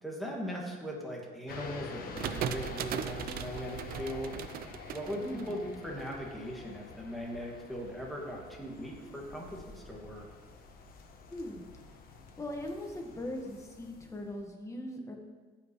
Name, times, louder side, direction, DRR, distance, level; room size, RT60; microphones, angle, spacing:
voice 1, 0.0-4.4 4.9-10.3, equal, ahead, -2 dB, 2.0 m, -39 dB
sound 1, 1.5-14.5, left 4 dB, 60° left, 1.1 m, -48 dB
sound 2, 2.1-6.0, right 9 dB, 60° right, 0.5 m, -38 dB
voice 2, 5.2-5.6 11.3-11.6 12.4-15.2, left 1 dB, 15° left, 2 dB, 1.5 m, -40 dB
16.0 x 5.7 x 3.1 m, 1.4 s
cardioid pair, 110°, 17 cm